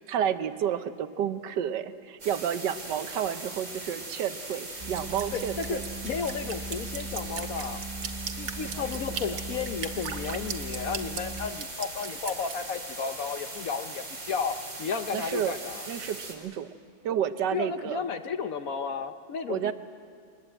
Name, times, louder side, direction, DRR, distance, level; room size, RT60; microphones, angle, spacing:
voice 1, 0.1-5.8 8.6-8.8 15.1-15.6 15.9-16.7 17.0-18.0 19.5-19.7, right 9 dB, 75° right, 12 dB, 1.4 m, -30 dB
sound 1, 2.2-16.3, right 2 dB, 45° right, 4.0 m, -40 dB
sound 2, 4.8-11.5, right 2 dB, 30° right, 1.1 m, -39 dB
Drip, 4.9-12.6, right 7 dB, 90° right, 1.9 m, -37 dB
voice 2, 5.3-7.8 8.4-15.8 17.5-19.7, left 6 dB, 60° left, 9 dB, 1.0 m, -33 dB
23.0 x 19.5 x 8.9 m, 2.2 s
omnidirectional pair, 2.0 m